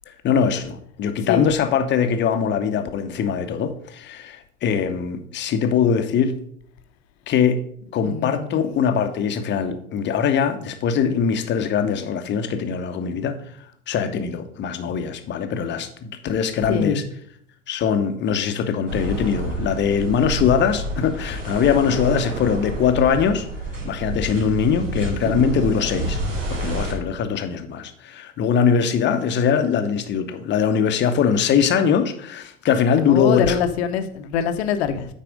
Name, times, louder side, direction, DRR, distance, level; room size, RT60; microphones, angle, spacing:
voice 1, 0.2-6.3 7.3-7.6 7.9-13.4 13.9-17.0 17.7-23.5 23.8-26.2 26.5-33.6, left 7 dB, 30° left, 9 dB, 0.9 m, -22 dB
voice 2, 8.0-8.6 16.7-17.0 33.1-35.1, left 7 dB, 60° left, 9 dB, 0.9 m, -24 dB
sound 1, 18.9-26.9, right 1 dB, 85° right, 2.2 m, -29 dB
9.1 x 4.2 x 5.1 m, 0.66 s
figure-of-eight pair, 75°, 37 cm